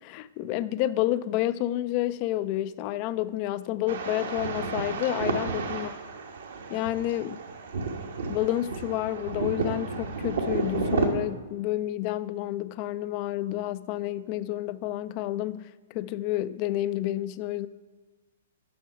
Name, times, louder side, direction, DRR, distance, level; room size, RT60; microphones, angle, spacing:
voice 1, 0.0-5.9 6.7-7.4 8.3-17.7, left 14 dB, 40° left, 0.3 m, -30 dB
sound 1, 3.9-11.1, right 4 dB, 70° right, 1.1 m, -31 dB
9.4 x 6.1 x 4.7 m
figure-of-eight pair, 115°, 0 cm